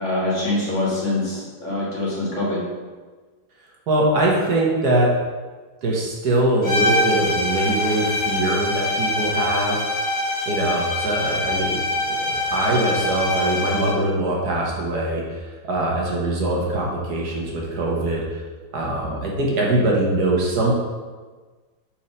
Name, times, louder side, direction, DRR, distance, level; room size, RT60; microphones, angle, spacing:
voice 1, 0.0-2.6, left 2 dB, 45° left, -6 dB, 1.9 m, -24 dB
voice 2, 3.9-5.1 5.8-9.8 10.5-11.8 12.1-18.4 18.7-20.7, right 1 dB, 65° right, -2 dB, 1.6 m, -22 dB
sound 1, 6.6-14.0, left 1 dB, 25° left, 1.7 m, -24 dB
4.4 x 4.4 x 5.3 m, 1.4 s
omnidirectional pair, 1.9 m